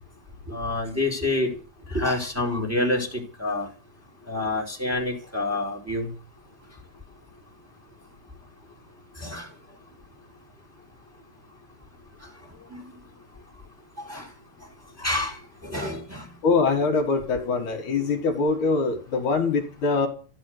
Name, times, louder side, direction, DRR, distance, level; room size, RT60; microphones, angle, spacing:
voice 1, 0.5-1.5 1.9-3.7 4.3-6.1 9.2-9.5 12.7-12.8 14.0-14.3 15.0-15.4 15.6-16.3, left 2 dB, 5° right, 4.2 m, -27 dB
voice 2, 16.4-20.1, left 4 dB, 65° left, 3.3 m, -23 dB
14.5 x 11.0 x 8.0 m
omnidirectional pair, 3.9 m